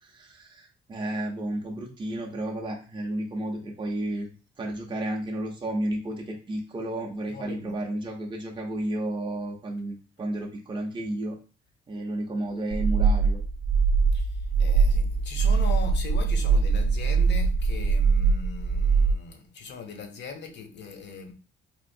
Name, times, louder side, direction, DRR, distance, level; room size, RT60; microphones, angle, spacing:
voice 1, 0.0-4.3 4.6-11.4 11.9-13.4, right 1 dB, 25° right, 0.6 m, -32 dB
voice 2, 7.3-7.7 14.1-14.2 14.6-21.3, left 4 dB, 60° left, 0.7 m, -39 dB
sound 1, 12.7-19.1, right 5 dB, 65° right, 0.5 m, -22 dB
3.6 x 2.5 x 2.6 m
cardioid pair, 90°, 20 cm